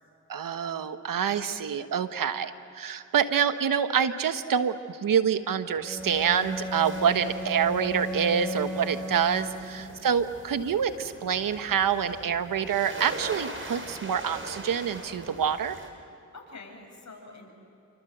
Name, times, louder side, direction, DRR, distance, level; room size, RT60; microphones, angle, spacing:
voice 1, 0.3-15.8, right 7 dB, 85° right, 10 dB, 1.3 m, -27 dB
Bowed string instrument, 5.8-10.2, equal, ahead, 3.6 m, -36 dB
sound 1, 6.0-15.9, right 2 dB, 40° right, 5.6 m, -42 dB
voice 2, 9.6-9.9 16.3-17.5, left 3 dB, 60° left, 1 dB, 7.3 m, -47 dB
28.0 x 25.0 x 8.0 m, 2.8 s
cardioid pair, 50°, 32 cm